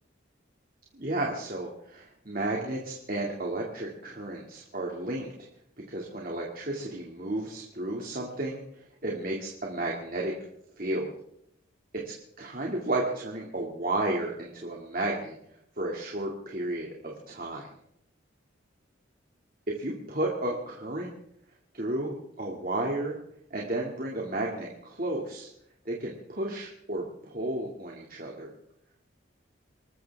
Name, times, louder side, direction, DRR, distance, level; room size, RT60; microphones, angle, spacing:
voice 1, 0.9-5.3 5.9-8.6 9.0-10.3 10.8-11.1 11.9-12.0 12.4-15.4 15.8-17.7 19.8-21.1 21.7-23.2 23.5-25.5 25.9-28.5, right 1 dB, 45° right, -1 dB, 2.2 m, -32 dB
26.0 x 14.0 x 3.5 m, 0.75 s
head